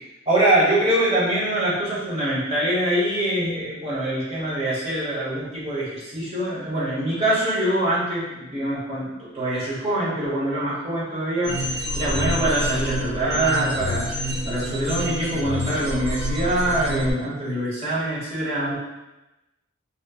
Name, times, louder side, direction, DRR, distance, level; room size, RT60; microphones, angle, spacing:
voice 1, 0.3-18.7, right 1 dB, 30° right, -8 dB, 1.1 m, -24 dB
sound 1, 11.4-17.1, equal, 55° right, 0.9 m, -27 dB
3.1 x 2.8 x 2.3 m, 1.0 s
head